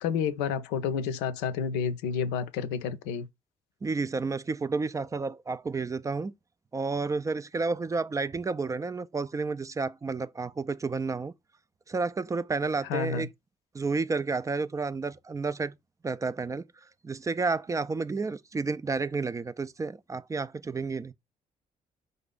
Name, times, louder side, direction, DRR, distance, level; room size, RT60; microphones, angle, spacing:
voice 1, 0.0-3.3 12.9-13.3, left 7 dB, 70° left, 0.5 m, -30 dB
voice 2, 3.8-6.3 6.7-11.3 11.9-13.3 13.7-15.7 16.0-16.7 17.0-21.1, right 4 dB, 20° right, 0.4 m, -31 dB
4.9 x 2.6 x 3.9 m
hypercardioid pair, 45°, 18 cm